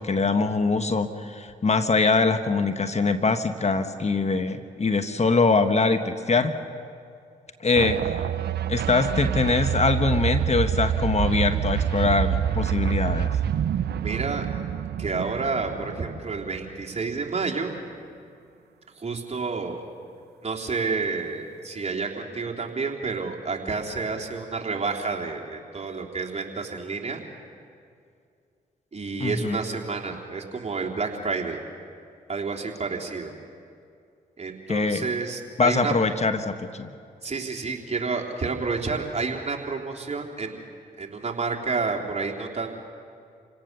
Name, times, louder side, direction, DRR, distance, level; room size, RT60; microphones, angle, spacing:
voice 1, 0.0-6.5 7.6-8.3 8.7-13.4 29.2-29.6 34.7-35.1 35.6-36.9, left 3 dB, 40° left, 9 dB, 1.4 m, -23 dB
sound 1, 7.7-16.9, right 9 dB, 65° right, 0.7 m, -27 dB
voice 2, 14.0-14.5 15.0-17.7 19.0-19.8 20.4-27.2 28.9-31.6 32.3-33.3 34.4-35.9 37.2-40.7 41.0-42.9, right 4 dB, 35° right, 0 dB, 3.5 m, -30 dB
28.5 x 18.0 x 6.9 m, 2.4 s
supercardioid pair, 45°, 18 cm